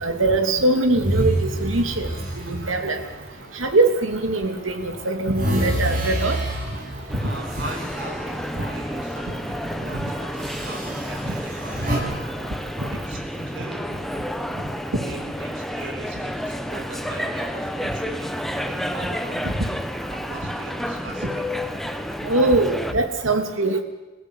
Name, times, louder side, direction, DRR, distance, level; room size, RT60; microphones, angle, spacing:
voice 1, 0.0-2.1 2.5-3.0 3.6-6.4 11.2-11.3 12.8-12.9 22.3-23.8, right 2 dB, 90° right, 6 dB, 2.8 m, -22 dB
sound 1, 0.9-4.2 4.7-9.0 9.3-9.6 10.4-12.0, right 1 dB, 45° right, 7.0 m, -29 dB
voice 2, 6.2-12.2 12.9-14.0 15.0-21.7, right 2 dB, 60° right, 4 dB, 4.9 m, -40 dB
sound 2, 7.1-22.9, equal, ahead, 1.1 m, -30 dB
28.0 x 16.0 x 8.2 m, 1.2 s
head